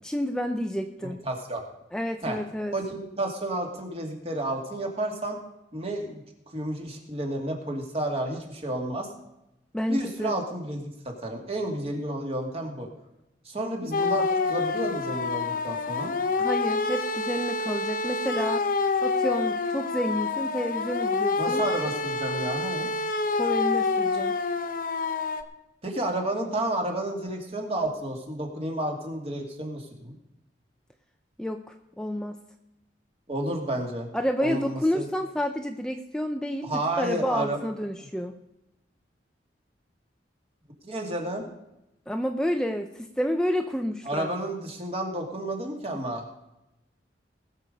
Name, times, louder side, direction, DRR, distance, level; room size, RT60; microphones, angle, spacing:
voice 1, 0.0-1.2 1.9-2.8 9.7-10.4 16.4-18.6 19.0-21.6 23.3-24.4 31.4-32.4 34.1-38.3 42.1-44.3, equal, 5° left, 5 dB, 0.5 m, -29 dB
voice 2, 1.0-1.6 2.2-2.4 2.7-5.4 5.7-6.2 6.5-9.1 9.9-12.9 13.4-16.1 21.4-22.9 25.8-30.2 33.3-34.1 34.4-35.1 36.6-37.6 40.8-41.5 44.1-46.3, right 1 dB, 35° right, 2 dB, 2.3 m, -31 dB
sound 1, 13.9-25.4, left 3 dB, 50° left, 1.0 m, -27 dB
19.5 x 6.9 x 5.3 m, 0.89 s
head